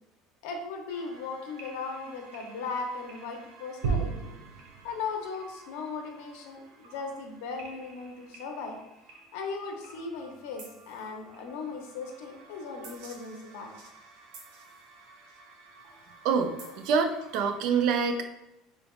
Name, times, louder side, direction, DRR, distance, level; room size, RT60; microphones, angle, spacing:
voice 1, 0.4-4.1 4.8-8.8 9.3-13.7 16.6-16.7 17.7-17.8, left 4 dB, 85° left, 3 dB, 0.7 m, -37 dB
sound 1, 0.9-17.7, right 5 dB, 90° right, 0.7 m, -42 dB
voice 2, 16.2-18.2, right 5 dB, 55° right, 7 dB, 0.4 m, -26 dB
4.0 x 3.4 x 2.3 m, 0.92 s
cardioid pair, 180°, 0 cm